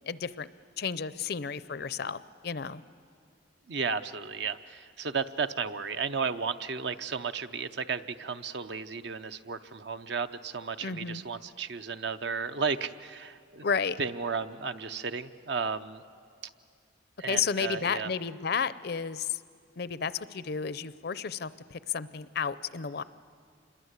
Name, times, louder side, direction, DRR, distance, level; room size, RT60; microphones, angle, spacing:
voice 1, 0.1-0.5 0.8-2.8 10.8-11.2 13.6-14.0 17.3-19.4 19.8-23.0, left 6 dB, 55° left, 16 dB, 0.5 m, -32 dB
voice 2, 3.7-13.7 14.0-16.0 17.2-18.1, right 5 dB, 60° right, 11 dB, 0.7 m, -34 dB
27.0 x 21.0 x 8.1 m, 2.2 s
head